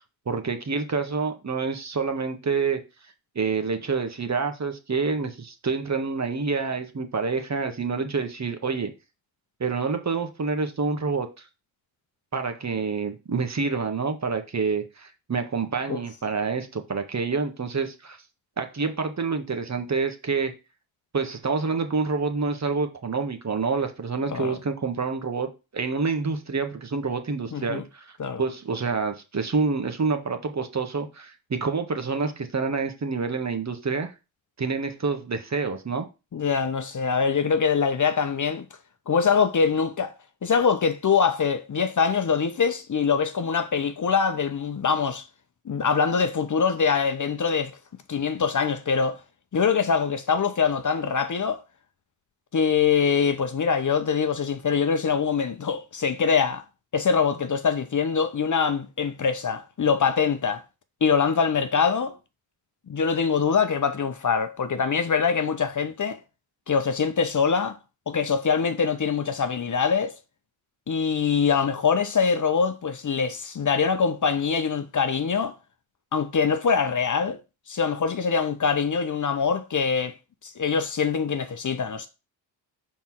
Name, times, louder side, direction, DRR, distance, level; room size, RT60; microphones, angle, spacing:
voice 1, 0.3-2.8 3.4-8.9 9.6-11.5 12.3-18.2 18.6-20.5 21.1-28.1 28.4-34.1 34.6-36.1, right 4 dB, 35° right, 1.7 m, -27 dB
voice 2, 27.5-27.8 28.2-28.4 36.3-38.7 39.1-40.1 40.4-45.3 45.6-47.8 48.1-49.2 49.5-51.6 52.5-56.6 56.9-60.6 61.0-62.2 62.9-66.2 66.7-67.8 68.1-70.1 70.9-75.5 76.1-77.4 77.7-80.1 80.4-82.1, left 6 dB, 40° left, 1.0 m, -23 dB
5.4 x 4.6 x 6.1 m
supercardioid pair, 70°, 48 cm